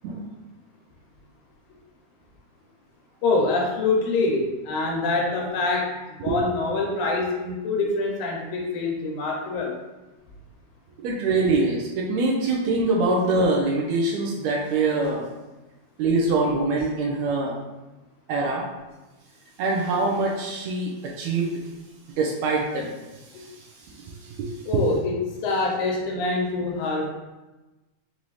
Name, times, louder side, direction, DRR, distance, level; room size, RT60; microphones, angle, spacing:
voice 1, 3.2-6.0 6.2-9.8 24.7-25.2 25.4-27.1, left 3 dB, 80° left, -1 dB, 2.1 m, -25 dB
voice 2, 11.0-15.3 16.0-17.5 18.3-18.6 19.6-21.6 22.2-23.7 23.9-24.8, right 3 dB, 75° right, -2 dB, 1.7 m, -24 dB
5.5 x 2.6 x 3.1 m, 1.1 s
omnidirectional pair, 3.5 m